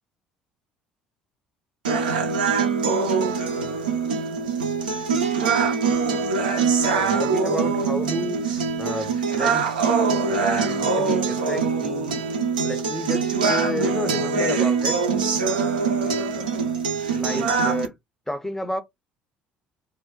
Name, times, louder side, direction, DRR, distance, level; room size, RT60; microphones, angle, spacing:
sound 1, 1.8-17.9, right 5 dB, 80° right, 0.5 m, -23 dB
voice 1, 6.8-9.8 10.3-12.3 12.6-15.0 17.1-17.9 18.3-18.8, left 1 dB, 5° left, 0.5 m, -31 dB
2.2 x 2.1 x 3.8 m
figure-of-eight pair, 55°, 5 cm